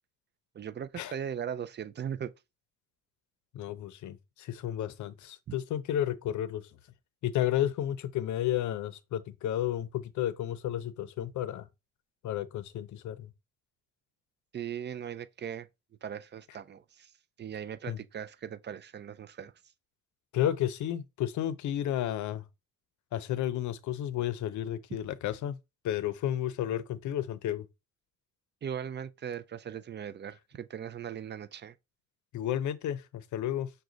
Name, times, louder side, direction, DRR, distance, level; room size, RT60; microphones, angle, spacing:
voice 1, 0.5-2.3 5.5-5.6 14.5-15.7 16.0-17.1 17.4-19.5 28.6-31.8, right 8 dB, 35° right, 0.4 m, -39 dB
voice 2, 3.5-6.7 7.2-11.7 12.2-13.3 17.9-18.0 20.3-22.5 23.1-25.6 25.8-27.7 32.3-33.7, left 11 dB, 70° left, 0.6 m, -32 dB
6.1 x 2.3 x 3.9 m
cardioid pair, 90°, 30 cm